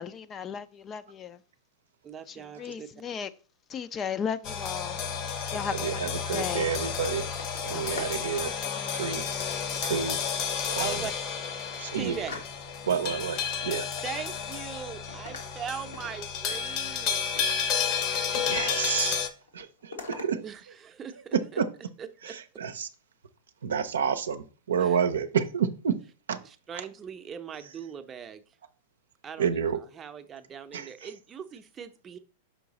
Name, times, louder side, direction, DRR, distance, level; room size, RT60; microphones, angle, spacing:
voice 1, 0.0-1.4 2.3-3.3 3.7-5.0 5.5-6.0 6.3-6.7 7.7-8.1, left 7 dB, 30° left, 0.5 m, -35 dB
voice 2, 2.0-2.9 10.8-11.1 11.9-12.3 14.0-17.2 20.4-21.6 22.0-22.3 24.8-25.0 26.4-28.4 29.2-29.6 30.0-32.2, right 7 dB, 25° right, 0.7 m, -40 dB
sound 1, 4.4-19.3, left 7 dB, 45° left, 0.9 m, -31 dB
voice 3, 5.6-7.3 7.6-8.5 8.9-9.3 9.8-10.2 10.7-11.1 11.8-12.2 12.9-13.9 18.0-19.2 19.5-20.4 21.3-21.7 22.2-22.9 23.6-26.0 26.3-26.4 26.7-26.9 29.4-29.8 30.7-31.1, right 7 dB, 75° right, 0.6 m, -29 dB
sound 2, 6.3-8.2 8.5-8.9 9.7-10.5 11.0-11.1 11.4-13.0 13.3-14.8 15.1-18.3 18.5-19.2 19.4-20.3, left 3 dB, 80° left, 1.4 m, -46 dB
5.8 x 4.6 x 4.0 m
hypercardioid pair, 100°, 0 cm